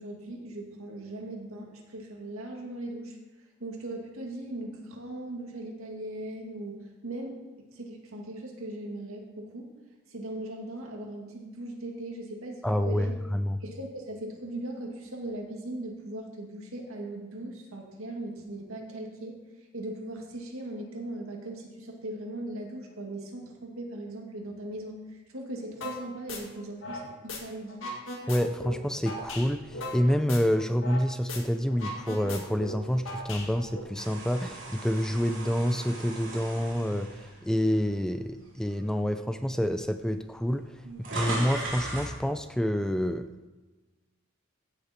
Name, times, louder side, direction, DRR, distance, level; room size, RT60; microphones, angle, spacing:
voice 1, 0.0-3.2 3.6-7.5 7.7-9.7 10.1-13.2 13.6-19.4 19.7-27.8 40.8-41.0, right 1 dB, 85° right, 1 dB, 2.1 m, -39 dB
voice 2, 12.6-13.6 28.3-40.7 41.1-43.5, equal, 5° left, 9 dB, 0.3 m, -28 dB
sound 1, 25.8-26.0 26.3-27.4 27.7-31.0 31.3-31.4 31.7-33.8, left 2 dB, 65° left, 2.0 m, -38 dB
sound 2, 33.9-38.2 38.7-38.9 39.8-39.9 40.1-42.2, right 2 dB, 65° right, 3.3 m, -38 dB
15.5 x 6.7 x 4.4 m, 1.2 s
head